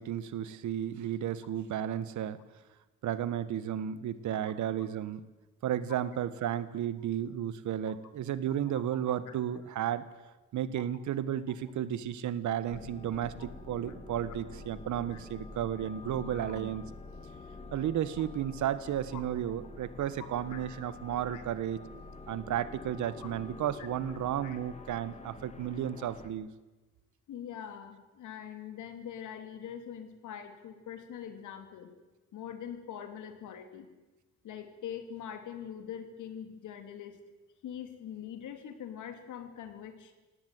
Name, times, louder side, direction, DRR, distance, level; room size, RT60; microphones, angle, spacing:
voice 1, 0.0-2.4 3.0-5.2 5.6-10.1 10.5-16.8 17.7-21.8 22.3-26.5, right 10 dB, 75° right, 15 dB, 1.4 m, -33 dB
sound 1, 12.7-26.3, left 3 dB, 20° left, 2.2 m, -47 dB
voice 2, 24.4-24.9 26.0-26.1 27.3-31.9 32.3-33.9 34.4-37.2 37.6-40.1, left 9 dB, 80° left, 8 dB, 3.0 m, -43 dB
18.0 x 18.0 x 9.4 m, 1.1 s
cardioid pair, 90°, 30 cm